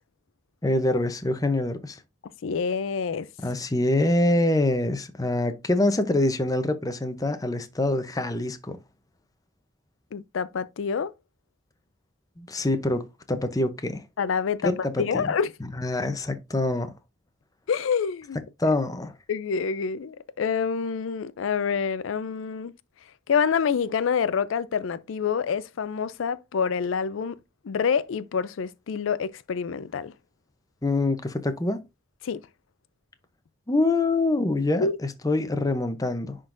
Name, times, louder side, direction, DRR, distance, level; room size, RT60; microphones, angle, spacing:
voice 1, 0.6-2.0 3.4-8.8 12.4-13.0 13.3-14.0 14.6-15.3 15.8-16.9 18.6-19.1 30.8-31.8 33.7-36.4, left 2 dB, 20° left, 0.7 m, -25 dB
voice 2, 2.4-3.3 10.1-11.1 14.2-15.5 17.7-18.4 19.3-22.7 23.3-27.4 27.6-30.1 32.2-32.4 34.8-35.0, left 6 dB, 80° left, 0.4 m, -27 dB
10.5 x 3.8 x 2.5 m
head